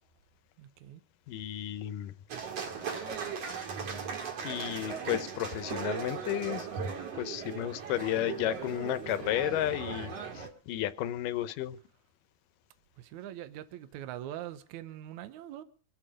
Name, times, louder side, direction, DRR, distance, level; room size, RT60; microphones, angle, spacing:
voice 1, 0.6-1.0 13.0-15.6, right 12 dB, 70° right, 2.1 m, -43 dB
voice 2, 1.3-2.1 4.4-6.7 7.1-11.8, left 13 dB, 75° left, 2.4 m, -33 dB
sound 1, 2.3-10.5, right 6 dB, 50° right, 2.9 m, -38 dB
25.0 x 8.5 x 5.0 m
omnidirectional pair, 3.9 m